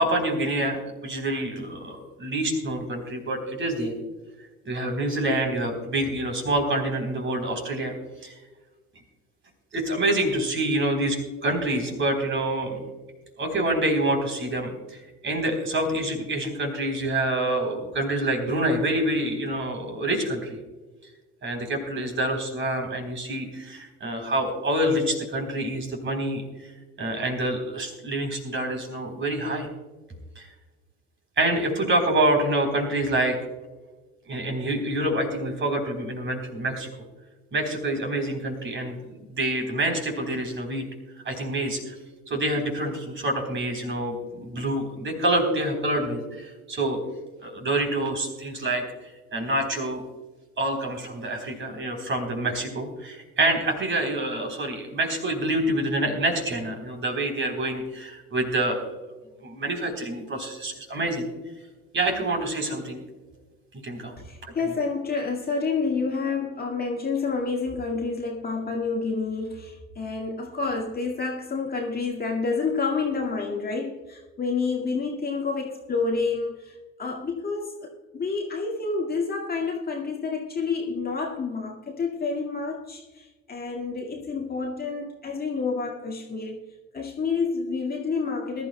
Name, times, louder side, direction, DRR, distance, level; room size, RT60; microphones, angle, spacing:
voice 1, 0.0-3.9 4.7-7.9 8.2-8.3 9.7-12.8 13.4-20.6 21.4-26.7 27.0-29.7 30.4-30.5 31.4-33.4 34.3-36.9 37.5-40.9 41.2-41.9 42.3-47.0 47.4-48.9 49.3-50.0 50.6-58.8 59.4-61.3 61.9-63.0 63.8-64.2, right 1 dB, 30° right, 3 dB, 3.7 m, -27 dB
voice 2, 64.2-86.6 86.9-88.7, left 4 dB, 25° left, -1 dB, 2.0 m, -29 dB
21.5 x 12.5 x 2.2 m, 1.2 s
figure-of-eight pair, 70°, 39 cm